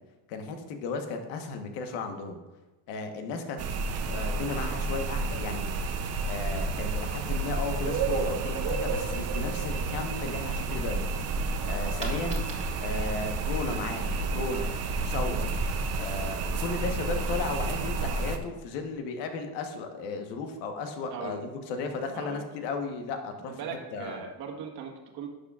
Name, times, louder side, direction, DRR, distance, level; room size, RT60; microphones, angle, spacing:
voice 1, 0.3-2.4 2.9-3.6 4.1-5.6 6.2-11.1 11.6-12.4 12.8-14.7 15.0-15.5 16.0-24.2, left 4 dB, 75° left, 5 dB, 1.3 m, -35 dB
sound 1, 3.6-18.4, right 3 dB, 40° right, 0.6 m, -30 dB
Coin (dropping), 12.0-17.7, right 3 dB, 15° right, 1.6 m, -49 dB
voice 2, 21.1-21.4 22.1-22.4 23.6-25.3, right 6 dB, 60° right, 2 dB, 1.5 m, -39 dB
11.5 x 6.7 x 2.4 m, 1.1 s
cardioid pair, 140°, 41 cm